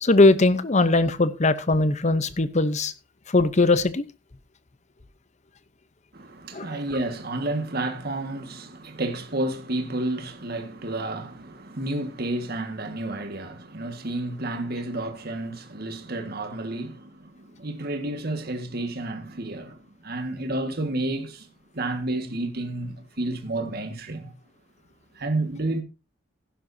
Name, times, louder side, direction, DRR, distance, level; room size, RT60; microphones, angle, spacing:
voice 1, 0.0-2.9 3.3-4.0 6.5-6.8, left 2 dB, 35° left, 0.8 m, -20 dB
voice 2, 6.1-21.5 21.7-24.3 25.2-25.8, right 2 dB, 50° right, 1.8 m, -31 dB
15.5 x 11.0 x 2.8 m
head